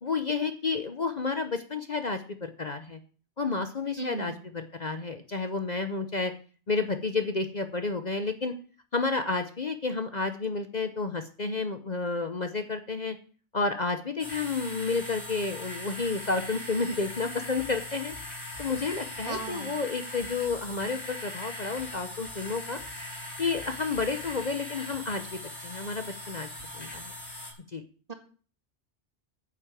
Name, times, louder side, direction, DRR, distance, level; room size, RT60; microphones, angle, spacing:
voice 1, 0.0-3.0 3.4-6.3 6.7-8.5 8.9-13.2 13.5-18.1 18.6-22.8 23.4-26.5 26.7-27.1 27.7-27.8, left 4 dB, 40° left, 8 dB, 0.9 m, -31 dB
voice 2, 4.0-4.3 19.3-19.8 28.1-28.2, right 3 dB, 35° right, 5 dB, 1.9 m, -35 dB
sound 1, 14.2-27.5, left 1 dB, 65° left, 5.1 m, -40 dB
9.7 x 8.3 x 7.4 m, 0.41 s
omnidirectional pair, 1.2 m